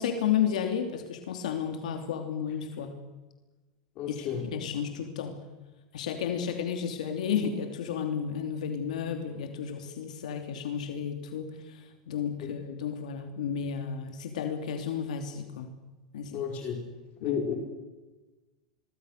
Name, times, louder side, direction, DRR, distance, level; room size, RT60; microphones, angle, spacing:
voice 1, 0.0-3.0 4.1-5.4 5.9-15.7 16.1-16.5 17.2-17.4, left 8 dB, 85° left, 6 dB, 2.9 m, -32 dB
voice 2, 4.0-4.4 16.3-16.8 17.2-17.5, left 7 dB, 40° left, 2 dB, 4.8 m, -31 dB
24.5 x 22.5 x 6.6 m, 1.2 s
supercardioid pair, 135°, 4 cm